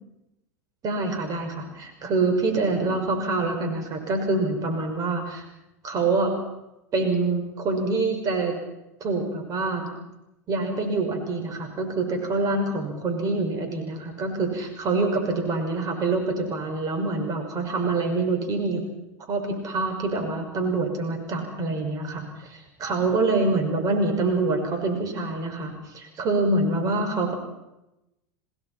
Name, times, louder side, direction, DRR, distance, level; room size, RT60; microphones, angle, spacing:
voice 1, 0.8-5.4 5.8-6.3 6.9-8.6 9.0-9.9 10.5-18.8 19.3-27.3, right 3 dB, 40° right, 4 dB, 6.1 m, -26 dB
27.5 x 19.0 x 5.9 m, 0.91 s
hypercardioid pair, 100°, 9 cm